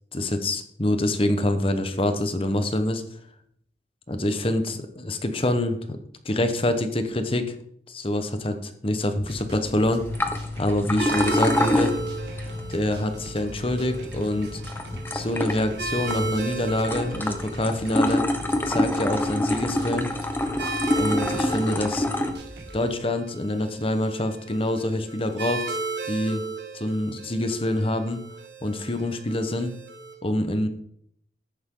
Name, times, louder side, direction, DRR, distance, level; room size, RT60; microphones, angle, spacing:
voice 1, 0.1-3.0 4.1-6.0 6.2-7.5 7.9-10.1 10.6-11.9 12.7-14.6 15.1-18.2 18.6-20.1 21.0-22.1 22.7-25.8 26.0-26.4 26.7-28.2 28.6-29.7 30.2-30.7, left 1 dB, 30° left, 8 dB, 1.2 m, -26 dB
sound 1, 9.1-22.8, right 1 dB, 65° right, 2.3 m, -42 dB
sound 2, 10.0-22.3, left 1 dB, 10° left, 1.1 m, -27 dB
sound 3, 11.0-30.1, right 3 dB, 80° right, 5.4 m, -35 dB
14.0 x 10.5 x 3.9 m, 0.67 s
head